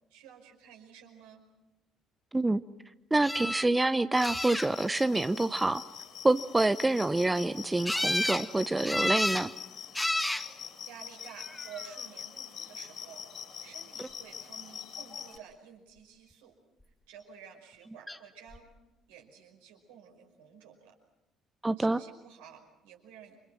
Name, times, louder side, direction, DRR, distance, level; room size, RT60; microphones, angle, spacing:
voice 1, 0.1-1.5 10.8-13.3 13.6-16.5 17.1-18.7 19.1-21.0 21.8-23.4, right 7 dB, 70° right, 2 dB, 5.4 m, -51 dB
voice 2, 2.3-2.6 3.1-5.8 6.2-9.5 21.6-22.0, right 2 dB, 15° right, 14 dB, 0.8 m, -27 dB
sound 1, 3.2-3.7 4.2-4.9 7.8-8.5 8.9-9.5 9.9-10.5 11.4-11.9 18.1-18.2 18.5-18.6, left 1 dB, 10° left, 2.1 m, -30 dB
sound 2, 4.1-15.4, left 8 dB, 55° left, 5.2 m, -44 dB
30.0 x 27.0 x 6.3 m, 0.97 s
figure-of-eight pair, 50°, 0 cm